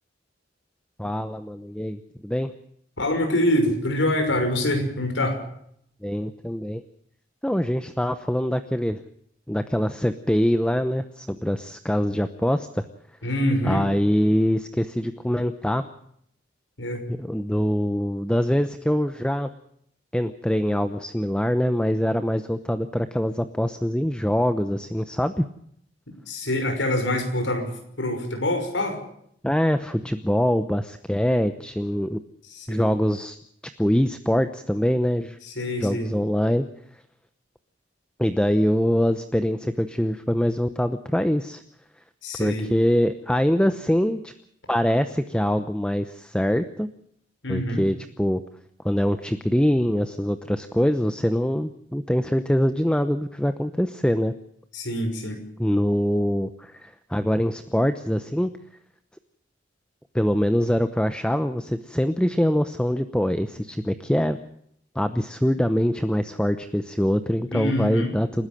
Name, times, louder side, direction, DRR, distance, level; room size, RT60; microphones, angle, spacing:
voice 1, 1.0-2.5 6.0-6.8 7.4-9.0 9.5-12.8 13.6-15.8 17.1-19.5 20.1-25.4 29.4-32.2 32.7-33.4 33.8-35.4 35.8-36.7 38.2-41.6 42.4-44.3 44.7-46.9 47.5-48.4 48.8-54.3 55.6-58.5 60.1-64.4 64.9-68.5, equal, 5° left, 10 dB, 0.8 m, -24 dB
voice 2, 3.0-5.4 13.2-13.8 16.8-17.0 26.3-29.0 32.5-32.9 35.4-36.1 42.2-42.7 47.4-47.8 54.7-55.4 67.5-68.1, left 1 dB, 85° left, 5 dB, 5.9 m, -25 dB
29.0 x 13.0 x 7.6 m, 0.69 s
head